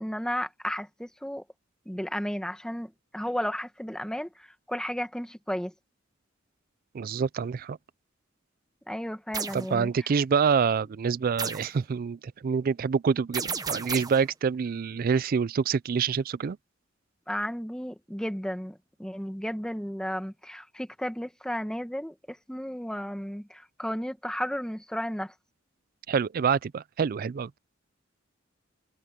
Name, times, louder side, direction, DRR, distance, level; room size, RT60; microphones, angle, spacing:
voice 1, 0.0-1.4 1.9-5.7 8.9-9.9 17.3-25.3, equal, 5° left, 1.3 m, -33 dB
voice 2, 6.9-7.8 9.5-16.6 26.1-27.6, right 6 dB, 45° right, 0.4 m, -26 dB
sound 1, 9.3-9.7 11.4-11.8 13.3-14.3, right 5 dB, 20° right, 1.0 m, -32 dB
head